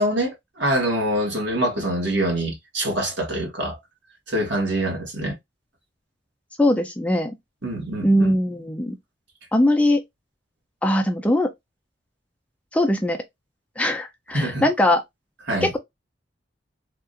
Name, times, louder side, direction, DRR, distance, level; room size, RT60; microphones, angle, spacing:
voice 1, 0.0-3.8 4.3-5.4 7.6-8.3 14.3-14.7 15.5-15.7, right 1 dB, 70° right, 1.4 m, -25 dB
voice 2, 6.6-7.3 8.0-9.0 9.5-10.0 10.8-11.5 12.7-13.2 13.8-15.0 15.6-15.8, left 1 dB, 5° left, 0.4 m, -20 dB
3.6 x 2.4 x 2.5 m
head